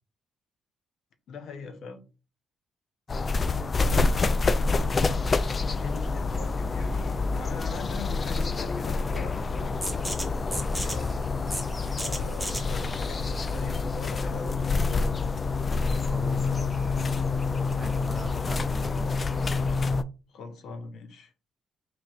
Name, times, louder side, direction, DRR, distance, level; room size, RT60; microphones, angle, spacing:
voice 1, 1.3-2.0 3.8-5.3 5.8-9.7 10.2-11.2 12.0-15.3 20.3-21.3, left 4 dB, 70° left, 0.8 m, -42 dB
sound 1, 3.1-20.0, left 4 dB, 35° left, 0.3 m, -27 dB
sound 2, 9.8-15.3, right 1 dB, ahead, 1.2 m, -37 dB
voice 2, 16.1-17.0 17.7-19.5, right 3 dB, 30° right, 0.5 m, -42 dB
3.1 x 2.9 x 4.1 m
cardioid pair, 90°, 0 cm